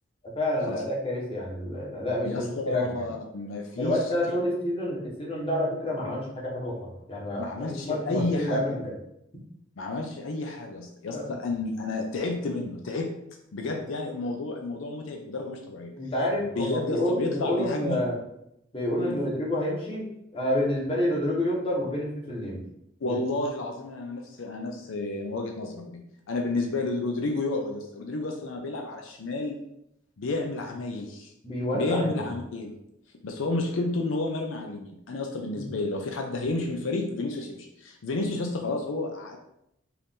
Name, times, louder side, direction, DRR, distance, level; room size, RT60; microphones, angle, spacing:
voice 1, 0.3-3.0 3.8-9.0 11.1-11.2 16.0-18.2 18.7-20.1 20.3-22.6 23.0-23.2 31.4-32.3 35.6-35.7, left 1 dB, 25° left, -4 dB, 1.2 m, -28 dB
voice 2, 2.2-4.0 7.4-8.6 9.8-13.1 13.5-15.9 16.4-18.0 19.0-19.2 23.0-29.6 30.2-31.3 31.7-32.7 33.2-39.4, left 2 dB, 80° left, 3 dB, 0.5 m, -31 dB
4.6 x 2.6 x 3.6 m, 0.79 s
head